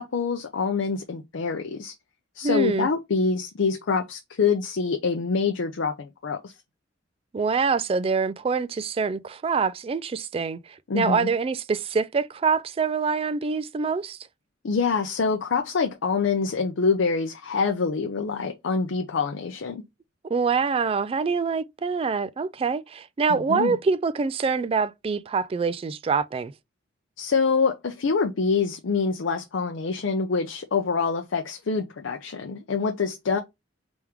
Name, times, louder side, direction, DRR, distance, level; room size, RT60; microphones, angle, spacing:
voice 1, 0.0-1.9 2.4-6.5 10.9-11.3 14.6-19.8 23.3-23.7 27.2-33.4, left 5 dB, 70° left, 0.5 m, -25 dB
voice 2, 2.4-2.9 7.3-14.2 20.3-26.5, right 5 dB, 30° right, 0.3 m, -25 dB
3.5 x 3.0 x 3.4 m
head